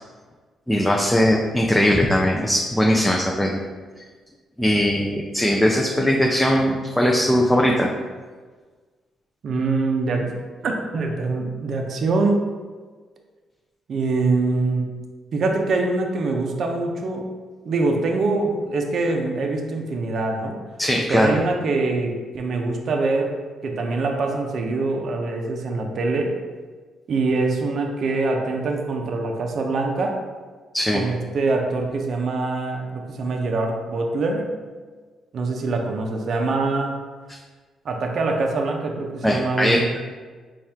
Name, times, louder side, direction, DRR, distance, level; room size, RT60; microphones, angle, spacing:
voice 1, 0.7-3.6 4.0-4.1 4.6-7.9 20.8-21.4 30.7-31.0 37.3-37.4 39.2-40.0, equal, 5° left, -1 dB, 0.4 m, -20 dB
voice 2, 9.4-10.3 10.6-12.4 13.9-14.9 15.3-17.2 17.7-20.6 21.1-23.4 23.6-26.3 27.1-30.2 30.9-34.5 35.3-36.9 37.8-39.9, right 3 dB, 60° right, 2 dB, 0.5 m, -24 dB
4.2 x 2.4 x 3.4 m, 1.4 s
cardioid pair, 90°, 0 cm